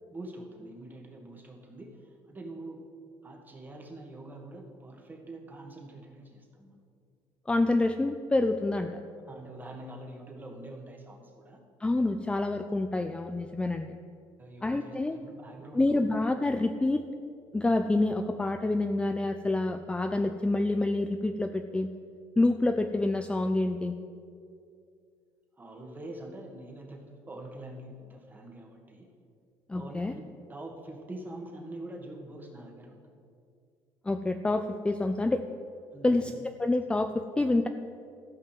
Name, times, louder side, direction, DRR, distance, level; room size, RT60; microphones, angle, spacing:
voice 1, 0.1-2.9 3.2-6.8 9.3-11.6 12.9-13.0 14.4-16.1 25.6-29.1 29.7-30.2 30.5-33.0 35.9-36.4 36.7-36.8, right 1 dB, 20° right, 2 dB, 2.0 m, -45 dB
voice 2, 7.5-9.0 11.8-14.0 14.6-15.2 15.7-17.0 17.5-21.9 22.4-23.9 29.7-30.1 34.1-35.4 36.0-36.3 36.6-37.7, left 2 dB, 10° left, 7 dB, 0.5 m, -27 dB
13.5 x 5.5 x 7.6 m, 2.4 s
supercardioid pair, 95°, 9 cm